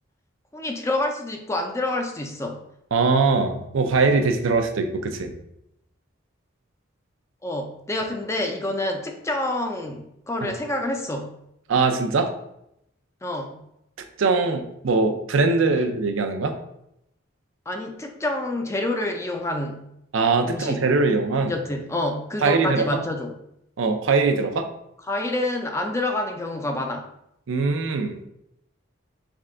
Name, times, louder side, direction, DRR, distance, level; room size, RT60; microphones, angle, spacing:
voice 1, 0.5-2.6 7.4-11.4 13.2-13.6 15.7-15.8 17.7-19.8 20.4-20.8 21.4-23.3 25.1-27.1, left 1 dB, 15° left, 4 dB, 0.4 m, -28 dB
voice 2, 2.9-5.3 10.4-10.5 11.7-12.3 14.2-16.6 20.1-21.5 22.4-22.9 23.8-24.7 27.5-28.2, right 4 dB, 75° right, 6 dB, 0.5 m, -21 dB
3.6 x 3.3 x 3.7 m, 0.79 s
head